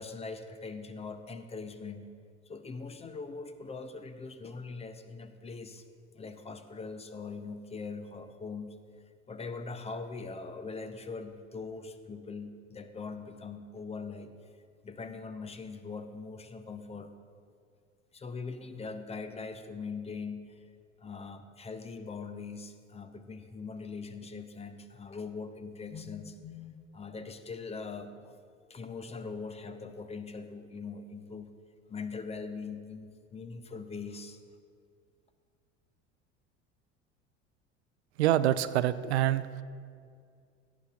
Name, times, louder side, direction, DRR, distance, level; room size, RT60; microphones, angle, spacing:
voice 1, 0.0-2.1 2.5-5.8 6.1-8.8 9.3-14.3 14.8-17.1 18.1-20.7 21.0-28.3 28.7-31.5 31.9-34.4, left 4 dB, 15° left, 10 dB, 0.6 m, -41 dB
voice 2, 38.2-39.6, right 12 dB, 65° right, 14 dB, 0.5 m, -26 dB
16.5 x 10.0 x 2.4 m, 2.2 s
figure-of-eight pair, 65°, 36 cm